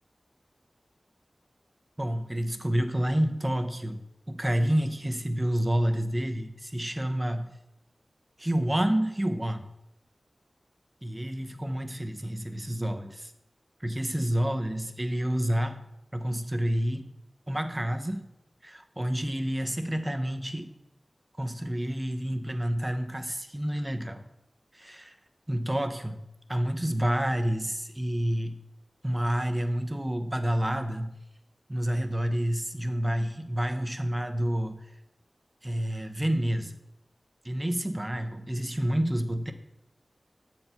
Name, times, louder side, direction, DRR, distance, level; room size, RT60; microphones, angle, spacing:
voice 1, 2.0-7.5 8.4-9.7 11.0-13.3 13.8-15.8 16.1-17.1 17.5-18.2 18.6-20.7 21.4-24.3 24.7-25.1 25.5-28.6 29.0-31.1 31.7-34.9 35.6-36.7 37.4-39.5, equal, 20° right, 7 dB, 0.8 m, -29 dB
7.5 x 4.4 x 5.6 m, 0.89 s
cardioid pair, 45°, 0 cm